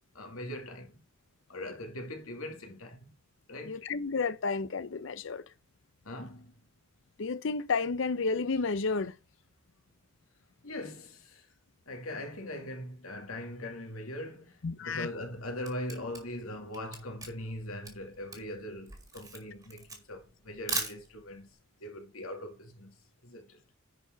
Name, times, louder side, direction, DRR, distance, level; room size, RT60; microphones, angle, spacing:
voice 1, 0.1-1.0 1.5-3.1 3.5-3.8 6.0-6.5 10.6-11.4 11.9-21.5 21.8-22.9 23.2-23.6, left 1 dB, 85° left, 2.4 m, -41 dB
voice 2, 3.6-5.4 7.2-9.1 14.6-15.1, left 4 dB, 60° left, 0.5 m, -31 dB
Camera, 15.2-21.4, right 3 dB, 15° right, 1.8 m, -39 dB
10.5 x 4.7 x 4.5 m
head